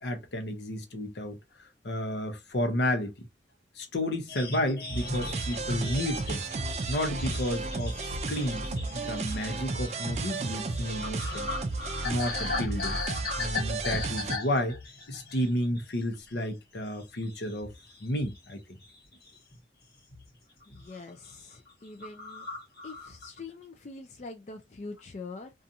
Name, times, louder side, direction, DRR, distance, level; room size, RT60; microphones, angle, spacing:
voice 1, 0.0-3.3 3.7-6.5 6.9-11.5 12.0-14.8 15.1-17.7 18.0-18.8, left 1 dB, 70° left, 0.7 m, -32 dB
sound 1, 4.3-16.0 16.3-16.6 17.0-18.5 18.8-19.6 20.1-20.3 20.6-21.0 21.3-21.4 21.7-21.8 22.0-23.4, left 3 dB, 55° left, 1.1 m, -38 dB
sound 2, 4.9-14.4, right 3 dB, 40° right, 0.4 m, -33 dB
voice 2, 20.7-22.5 22.8-25.5, left 3 dB, 40° left, 0.4 m, -44 dB
2.6 x 2.4 x 2.6 m
head